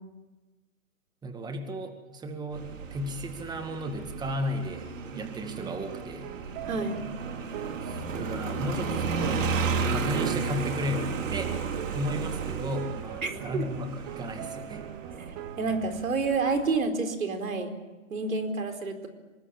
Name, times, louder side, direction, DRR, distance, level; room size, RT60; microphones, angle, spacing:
voice 1, 1.2-6.3 7.8-9.5 9.9-11.5 11.9-14.8, equal, 10° right, 6 dB, 2.1 m, -34 dB
Motorcycle, 2.5-16.8, right 5 dB, 70° right, 3.2 m, -33 dB
sound 1, 5.6-16.0, right 9 dB, 35° right, 2.2 m, -42 dB
voice 2, 6.7-7.0 13.2-13.6 15.3-17.7 18.1-19.1, right 4 dB, 85° right, 7 dB, 4.5 m, -29 dB
25.5 x 20.5 x 8.8 m, 1.2 s
hypercardioid pair, 140°, 40 cm